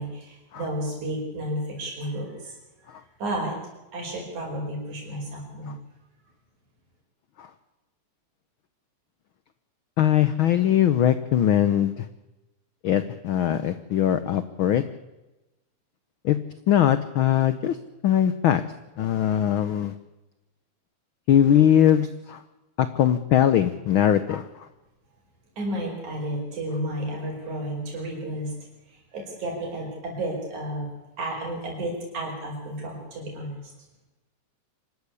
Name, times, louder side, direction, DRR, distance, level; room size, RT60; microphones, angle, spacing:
voice 1, 0.0-2.6 3.2-3.6 3.9-5.8 25.6-28.5 28.9-30.9 31.2-33.6, right 1 dB, 80° right, -1 dB, 6.5 m, -32 dB
voice 2, 10.0-12.1 12.8-14.8 16.2-16.4 16.7-17.8 18.0-18.6 19.0-19.9 21.3-22.4 22.8-24.7, left 10 dB, 85° left, 13 dB, 1.1 m, -21 dB
25.5 x 13.0 x 8.3 m, 1.0 s
omnidirectional pair, 3.4 m